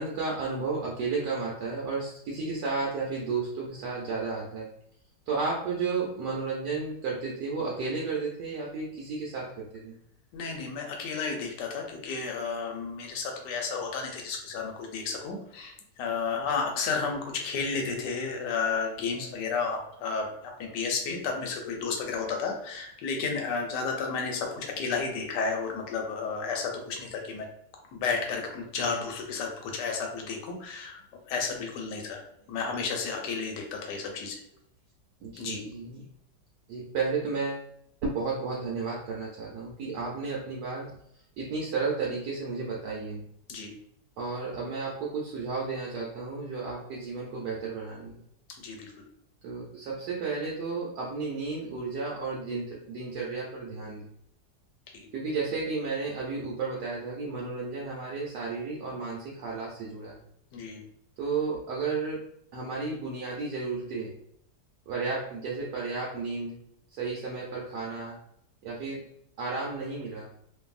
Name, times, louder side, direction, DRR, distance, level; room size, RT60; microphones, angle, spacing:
voice 1, 0.0-4.7 5.3-9.9 13.0-13.2 16.7-16.8 17.6-17.7 18.7-18.8 19.2-19.3 20.6-20.7 24.7-24.8 26.8-26.9 35.2-36.1 36.7-37.6 38.0-40.9 41.4-43.2 44.2-48.2 49.4-54.1 55.1-60.2 61.2-62.2 62.5-64.1 64.9-66.6 66.9-68.2 68.6-69.1 69.4-70.3, right 4 dB, 75° right, -3 dB, 1.1 m, -33 dB
voice 2, 10.3-20.3 20.6-27.5 27.9-31.0 31.3-32.2 32.5-34.4 35.4-35.6 43.5-43.7 48.6-48.9 54.9-55.1 60.5-60.8, left 5 dB, 80° left, 2 dB, 1.2 m, -32 dB
2.6 x 2.5 x 2.4 m, 0.73 s
omnidirectional pair, 1.9 m